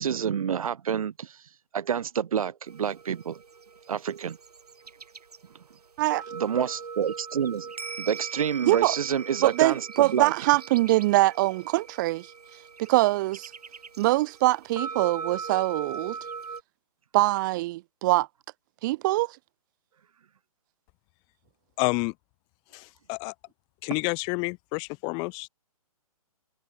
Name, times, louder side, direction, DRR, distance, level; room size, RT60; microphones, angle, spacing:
voice 1, 0.0-1.3 1.7-3.4 3.9-4.4 6.3-7.7 8.0-10.3, right 8 dB, 65° right, 1.6 m, -28 dB
sound 1, 2.7-16.6, right 5 dB, 90° right, 1.6 m, -40 dB
voice 2, 8.6-8.9 9.4-12.3 12.8-13.5 14.0-16.2 17.1-18.3 18.8-19.4, right 19 dB, 30° right, 1.6 m, -23 dB
voice 3, 21.8-22.1 22.7-23.3 23.8-25.5, left 33 dB, 25° left, 1.1 m, -29 dB
hypercardioid pair, 150°, 19 cm